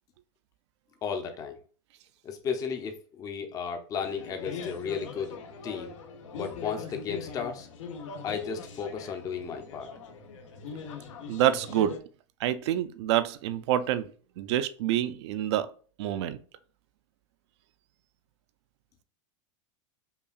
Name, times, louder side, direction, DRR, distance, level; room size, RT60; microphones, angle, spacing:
voice 1, 1.0-1.6 2.2-5.4 5.6-5.9 6.3-7.7 8.2-9.9, left 6 dB, 20° left, 6 dB, 0.6 m, -34 dB
sound 1, 4.0-12.0, left 5 dB, 80° left, 0.9 m, -41 dB
voice 2, 11.3-11.9 12.4-14.0 14.4-15.7 16.0-16.4, right 11 dB, 65° right, 13 dB, 0.5 m, -27 dB
5.4 x 2.4 x 2.4 m, 0.40 s
supercardioid pair, 150°, 16 cm